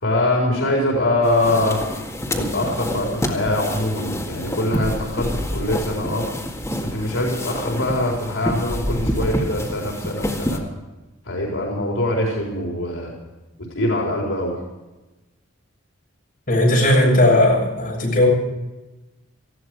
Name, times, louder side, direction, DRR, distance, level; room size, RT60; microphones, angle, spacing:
voice 1, 0.0-1.8 2.3-6.3 6.9-10.6 11.3-13.1 13.7-14.5, left 1 dB, 80° left, -2 dB, 4.4 m, -23 dB
sound 1, 1.2-10.6, equal, 15° left, 2.0 m, -27 dB
voice 2, 16.5-18.3, left 1 dB, 45° left, -3 dB, 7.0 m, -16 dB
19.5 x 15.0 x 4.8 m, 1.1 s
head